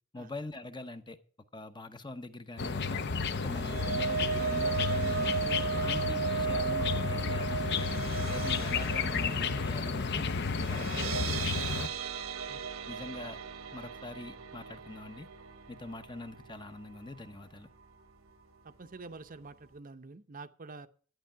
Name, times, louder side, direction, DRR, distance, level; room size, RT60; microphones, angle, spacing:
voice 1, 0.1-1.2 1.5-3.0 3.3-7.9 8.3-10.3 10.7-11.6 12.9-13.4 13.7-15.3 15.7-17.7, left 2 dB, 20° left, 0.9 m, -43 dB
sound 1, 2.6-11.9, left 5 dB, 55° left, 0.7 m, -32 dB
sound 2, 3.2-17.4 17.8-18.0 18.3-18.4, right 6 dB, 85° right, 1.2 m, -36 dB
voice 2, 18.6-20.9, right 3 dB, 40° right, 0.7 m, -47 dB
11.0 x 10.0 x 4.6 m
head